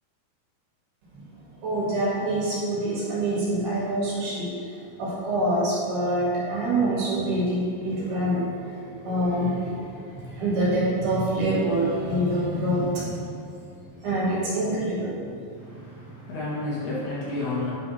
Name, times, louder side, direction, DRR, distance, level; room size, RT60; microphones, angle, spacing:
voice 1, 1.6-4.5 5.0-8.6 8.9-13.3 14.0-15.1, right 1 dB, 65° right, -6 dB, 2.8 m, -25 dB
voice 2, 15.6-17.7, left 2 dB, 65° left, -9 dB, 3.6 m, -31 dB
9.2 x 3.2 x 5.6 m, 2.4 s
omnidirectional pair, 5.2 m